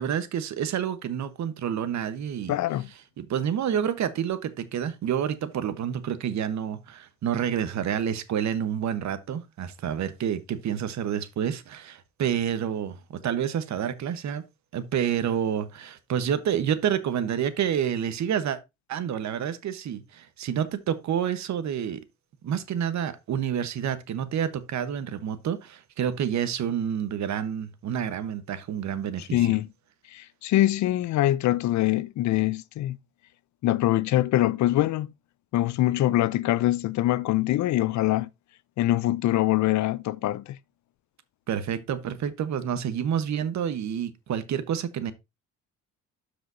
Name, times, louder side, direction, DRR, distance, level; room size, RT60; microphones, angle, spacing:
voice 1, 0.0-2.5 3.2-13.0 13.2-14.4 14.7-18.6 18.9-22.0 22.4-29.5 41.5-45.1, right 9 dB, 65° right, 1.1 m, -28 dB
voice 2, 2.5-2.9 29.2-29.7 30.1-33.0 33.6-35.1 35.5-38.3 38.8-40.6, left 15 dB, 70° left, 0.5 m, -24 dB
12.5 x 4.9 x 2.6 m
cardioid pair, 90°, 30 cm